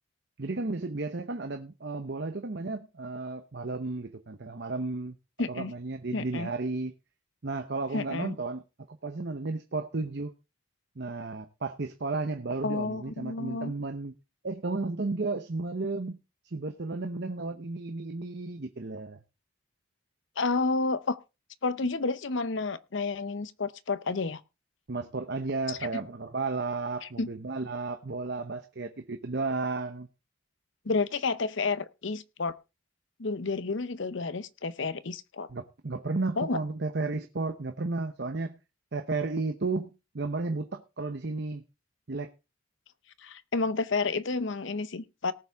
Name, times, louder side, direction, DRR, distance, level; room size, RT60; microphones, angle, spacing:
voice 1, 0.4-5.2 5.5-6.9 7.4-8.6 9.0-10.3 11.0-14.1 14.4-16.2 16.4-19.2 24.9-30.1 35.5-38.6 38.9-41.6 42.1-42.3, right 3 dB, 55° right, 0.9 m, -33 dB
voice 2, 5.4-5.7 6.1-6.5 7.9-8.3 12.6-13.7 20.4-21.2 21.6-24.4 25.7-25.8 27.0-27.3 30.8-32.5 33.2-35.5 36.4-36.6 43.2-45.3, left 3 dB, 65° left, 0.7 m, -30 dB
18.5 x 7.1 x 3.5 m
head